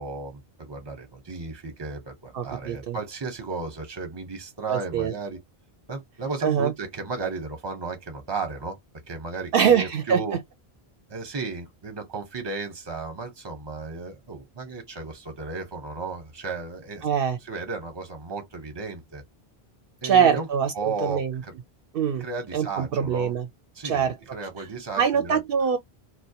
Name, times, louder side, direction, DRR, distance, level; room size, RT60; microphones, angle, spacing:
voice 1, 0.0-5.4 5.9-8.8 9.1-10.4 11.1-17.1 17.5-19.2 20.0-20.5 20.7-21.5 22.2-23.3 23.7-25.4, right 4 dB, 25° right, 0.8 m, -34 dB
voice 2, 2.3-3.0 4.7-5.1 6.4-6.7 9.5-10.2 17.0-17.4 20.0-20.7 21.0-21.4 21.9-22.3 22.5-23.5 23.8-24.2 25.0-25.8, right 7 dB, 65° right, 0.7 m, -23 dB
2.3 x 2.1 x 2.7 m
omnidirectional pair, 1.0 m